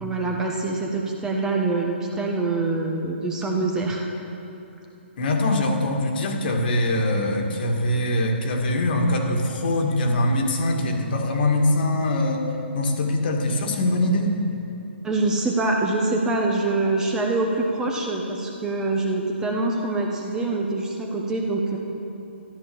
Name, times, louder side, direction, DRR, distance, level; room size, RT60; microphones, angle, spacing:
voice 1, 0.0-4.1 15.0-21.8, right 2 dB, 10° right, 0 dB, 1.1 m, -25 dB
voice 2, 5.2-12.5 12.7-14.3, left 1 dB, 50° left, 2 dB, 2.1 m, -23 dB
13.5 x 11.0 x 7.2 m, 2.9 s
hypercardioid pair, 155°, 7 cm